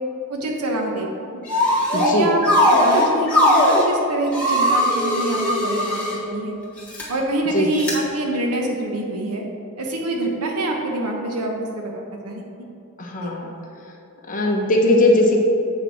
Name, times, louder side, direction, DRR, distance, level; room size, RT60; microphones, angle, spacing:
voice 1, 0.3-1.1 1.9-6.6 7.1-9.4 9.8-12.4 13.2-13.3, right 1 dB, 90° right, 1 dB, 1.1 m, -25 dB
sound 1, 1.5-2.1 2.4-3.8 4.3-6.2 6.8-7.0 7.8-7.9, left 1 dB, 5° left, 1.5 m, -18 dB
voice 2, 1.9-2.3 7.5-7.7 13.0-13.5 14.3-15.4, left 1 dB, 35° left, 0 dB, 0.9 m, -18 dB
8.0 x 4.1 x 5.7 m, 2.7 s
head